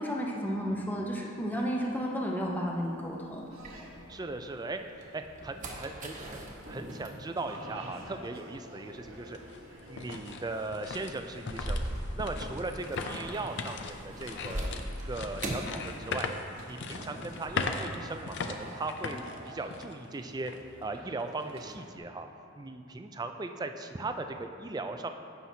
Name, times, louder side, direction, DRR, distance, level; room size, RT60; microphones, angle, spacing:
voice 1, 0.0-3.4, equal, 10° left, -2 dB, 0.8 m, -32 dB
sound 1, 1.6-4.4 4.8-16.6 16.8-17.7, right 1 dB, 40° right, 1.1 m, -42 dB
sound 2, 3.5-22.0, right 1 dB, 80° right, 1.3 m, -49 dB
voice 2, 4.1-4.8 5.1-6.4 6.7-9.4 9.9-11.8 12.2-16.3 16.7-20.5 20.8-22.3 22.6-25.1, right 2 dB, 20° right, 7 dB, 0.4 m, -38 dB
sound 3, 8.5-8.6 9.1-20.1 20.4-20.6 21.2-21.5, left 4 dB, 60° left, 0.5 m, -39 dB
15.0 x 5.8 x 2.8 m, 3.0 s
head